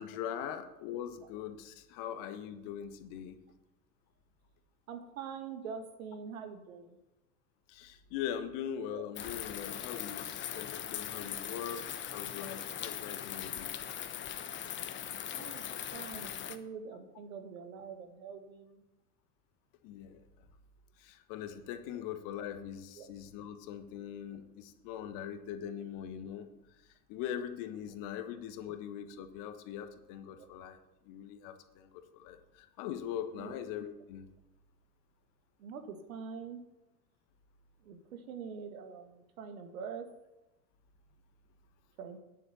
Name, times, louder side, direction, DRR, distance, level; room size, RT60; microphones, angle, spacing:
voice 1, 0.0-3.4 7.7-11.8 12.1-13.7 19.8-20.2 21.0-26.5 27.1-30.8 31.0-34.3, left 9 dB, 45° left, 9 dB, 1.4 m, -41 dB
voice 2, 4.9-7.0 8.9-9.1 9.5-9.6 10.5-10.6 12.8-12.9 15.3-15.6 15.9-18.8 22.9-23.1 30.4-30.5 33.4-33.6 35.6-36.6 37.8-40.1 42.0-42.2, right 6 dB, 60° right, 6 dB, 2.0 m, -44 dB
sound 1, 9.2-16.6, left 10 dB, 25° left, 1.0 m, -40 dB
10.0 x 7.8 x 7.1 m, 0.99 s
figure-of-eight pair, 80°, 46 cm